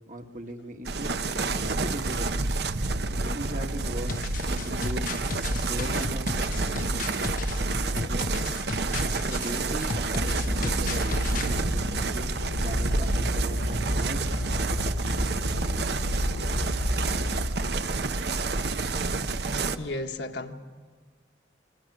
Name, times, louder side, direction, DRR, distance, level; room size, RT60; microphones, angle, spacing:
voice 1, 0.1-1.1 1.5-2.3 3.1-4.2 4.5-5.1 5.6-7.1 7.6-8.3 9.2-12.3 12.6-14.3, right 1 dB, 40° right, 4 dB, 1.6 m, -38 dB
sound 1, 0.8-19.8, right 3 dB, 60° right, 0.9 m, -29 dB
sound 2, 4.0-11.6, left 4 dB, 45° left, 0.6 m, -35 dB
sound 3, 10.2-17.5, equal, 90° left, 2.4 m, -32 dB
voice 2, 19.8-20.5, left 2 dB, 65° left, 3 dB, 1.7 m, -33 dB
28.5 x 23.0 x 6.1 m, 1.5 s
head